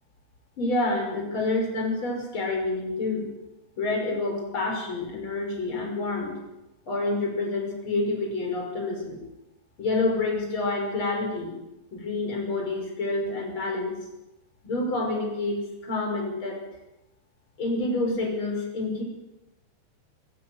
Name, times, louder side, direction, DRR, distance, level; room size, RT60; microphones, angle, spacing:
voice 1, 0.6-3.3 3.8-6.4 6.9-9.2 9.8-11.5 11.9-13.9 14.6-16.6 17.6-19.0, left 2 dB, 25° left, 1 dB, 6.3 m, -28 dB
23.0 x 16.0 x 8.1 m, 0.93 s
omnidirectional pair, 5.2 m